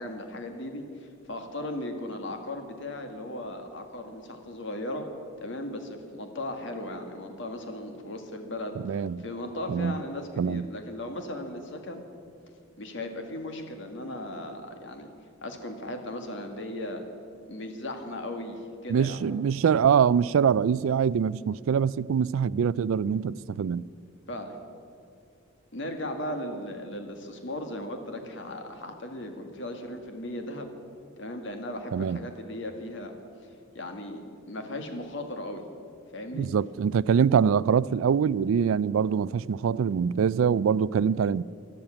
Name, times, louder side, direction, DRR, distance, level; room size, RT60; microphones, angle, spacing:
voice 1, 0.0-5.1 5.4-12.0 12.8-15.1 15.4-17.0 17.5-19.2 24.3-24.6 25.7-30.7 31.2-33.1 33.4-33.5 33.8-35.6 36.1-36.5, left 1 dB, 65° left, 1.8 m, -37 dB
voice 2, 8.8-9.2 9.7-10.0 10.4-10.7 18.9-23.8 31.9-32.2 36.3-41.4, right 7 dB, 80° right, 0.3 m, -24 dB
13.0 x 12.0 x 8.8 m
head